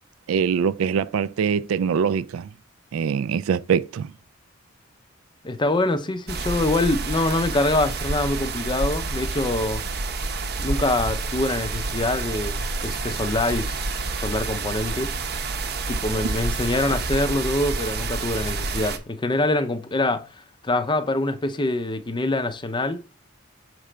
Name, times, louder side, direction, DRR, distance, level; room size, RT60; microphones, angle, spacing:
voice 1, 0.3-2.5 2.9-4.1, right 7 dB, 85° right, 0.3 m, -23 dB
voice 2, 5.4-9.8 10.6-15.1 15.9-20.2 20.6-23.0, left 2 dB, 25° left, 0.5 m, -25 dB
sound 1, 6.3-19.0, right 3 dB, 50° right, 0.7 m, -28 dB
6.6 x 3.3 x 5.0 m
head